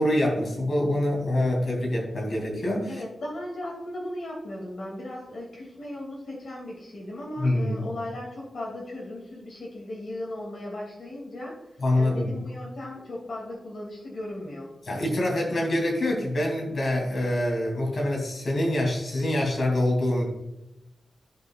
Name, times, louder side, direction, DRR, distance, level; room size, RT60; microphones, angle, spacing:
voice 1, 0.0-3.0 7.4-7.9 11.8-12.3 14.8-20.3, left 1 dB, 50° left, -1 dB, 2.9 m, -25 dB
voice 2, 2.9-14.7, left 1 dB, 65° left, -3 dB, 2.5 m, -37 dB
15.5 x 5.5 x 2.4 m, 0.94 s
wide cardioid pair, 150°, 0 cm